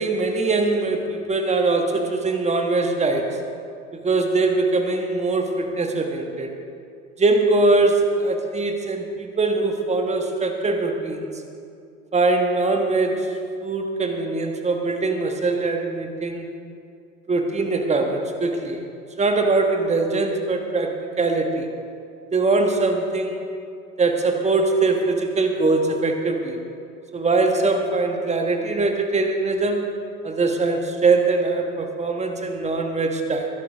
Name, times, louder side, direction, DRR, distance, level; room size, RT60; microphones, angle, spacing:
voice 1, 0.0-3.4 3.9-6.5 7.2-11.3 12.1-16.5 17.3-18.9 19.2-21.7 22.3-23.5 24.0-26.6 27.1-29.9 30.2-33.5, right 3 dB, 15° right, 4 dB, 1.5 m, -22 dB
22.0 x 11.5 x 3.6 m, 2.4 s
figure-of-eight pair, 85°, 43 cm